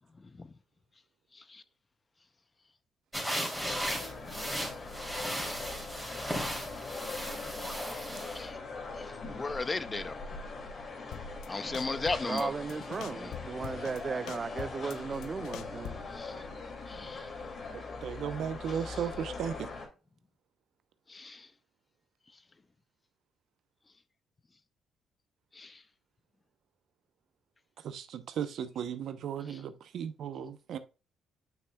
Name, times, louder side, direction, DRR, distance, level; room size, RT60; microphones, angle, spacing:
voice 1, 0.2-0.5 1.3-1.6 5.4-5.7 8.3-8.6 8.9-10.2 11.5-12.5 13.1-13.3 16.1-16.4 16.9-17.3 21.1-21.5 25.5-25.8 29.5-29.6, left 3 dB, 25° left, 0.7 m, -37 dB
sound 1, 3.1-8.4, equal, 5° left, 2.9 m, -36 dB
sound 2, 3.5-19.9, left 3 dB, 50° left, 2.3 m, -42 dB
sound 3, 11.1-11.5 11.7-12.4 12.7-14.0 14.3-16.2, left 10 dB, 85° left, 0.5 m, -43 dB
voice 2, 12.3-16.0, right 5 dB, 35° right, 0.3 m, -36 dB
voice 3, 17.7-19.7 27.8-30.8, right 8 dB, 70° right, 0.8 m, -36 dB
9.3 x 5.8 x 2.3 m
cardioid pair, 90°, 0 cm